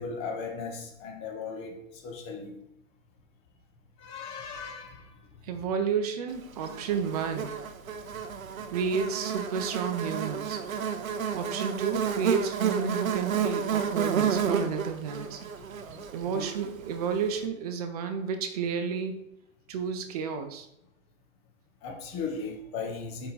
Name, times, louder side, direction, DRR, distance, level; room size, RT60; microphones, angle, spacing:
voice 1, 0.0-2.6 4.0-5.1 5.5-5.7 8.1-8.3 15.9-16.4 17.0-17.2 21.8-23.3, left 4 dB, 15° left, 0.7 m, -37 dB
voice 2, 5.5-7.5 8.7-10.6 11.3-15.5 16.1-19.2 19.7-20.7, right 6 dB, 30° right, 0.7 m, -31 dB
Buzz, 6.6-17.1, right 7 dB, 80° right, 0.9 m, -31 dB
5.6 x 4.9 x 3.9 m
hypercardioid pair, 145°, 40 cm